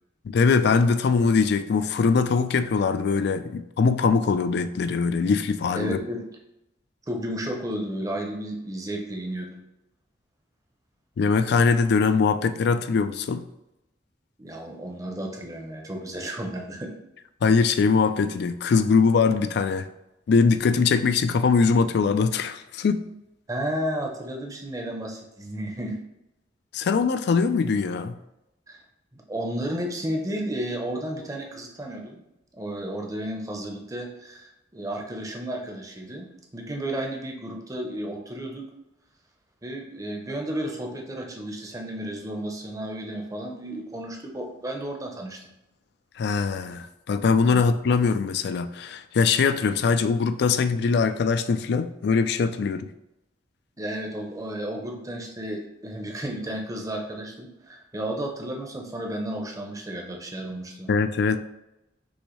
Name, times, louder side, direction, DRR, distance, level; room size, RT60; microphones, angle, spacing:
voice 1, 0.3-6.0 11.2-13.4 17.4-19.9 20.3-23.0 26.7-28.2 46.2-52.9 60.9-61.4, left 5 dB, 65° left, 11 dB, 0.3 m, -22 dB
voice 2, 5.7-6.2 7.1-9.6 14.4-16.9 23.5-26.0 28.7-28.8 29.1-32.2 32.6-38.6 39.6-45.4 47.5-47.6 53.8-60.9, right 1 dB, 20° right, 1 dB, 0.7 m, -33 dB
6.3 x 2.7 x 3.1 m, 0.90 s
head